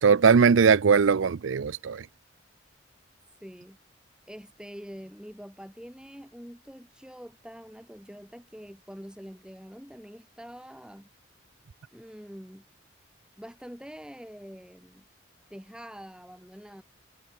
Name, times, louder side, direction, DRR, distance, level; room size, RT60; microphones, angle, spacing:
voice 1, 0.0-2.1, right 6 dB, 75° right, 0.5 m, -20 dB
voice 2, 3.4-3.8 4.3-11.1 11.9-12.6 13.4-15.1 15.5-16.8, equal, 5° right, 2.3 m, -45 dB
head